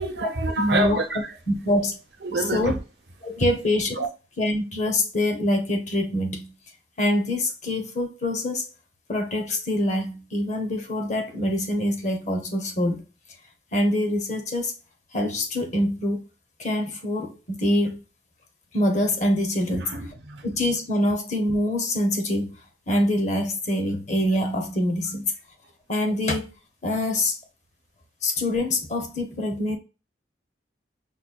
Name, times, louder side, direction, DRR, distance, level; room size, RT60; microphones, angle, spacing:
voice 1, 0.0-1.3 2.2-2.8 4.0-4.1 19.8-20.5, right 1 dB, 70° right, 0.8 m, -27 dB
voice 2, 0.6-1.0 1.5-2.0 2.5-2.7 3.2-4.0 4.4-6.5 7.0-8.7 9.1-13.0 13.7-14.7 15.1-16.2 16.6-18.0 18.7-19.9 20.4-22.5 22.9-25.3 25.9-26.5 26.8-27.4 28.2-29.8, left 1 dB, 40° left, 0.8 m, -25 dB
5.4 x 2.2 x 2.2 m
head